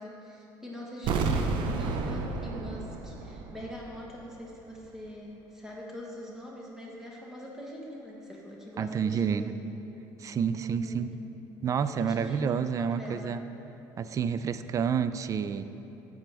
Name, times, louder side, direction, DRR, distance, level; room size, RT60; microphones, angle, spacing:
voice 1, 0.0-9.5 10.5-11.2 11.8-13.4, equal, 5° right, -4 dB, 1.3 m, -43 dB
sound 1, 1.0-3.9 4.2-4.3, right 4 dB, 65° right, 0.7 m, -31 dB
voice 2, 8.8-9.5 10.2-11.1 11.6-13.4 14.0-15.7, right 7 dB, 40° right, 12 dB, 0.4 m, -29 dB
10.5 x 8.0 x 3.4 m, 2.9 s
cardioid pair, 105°, 9 cm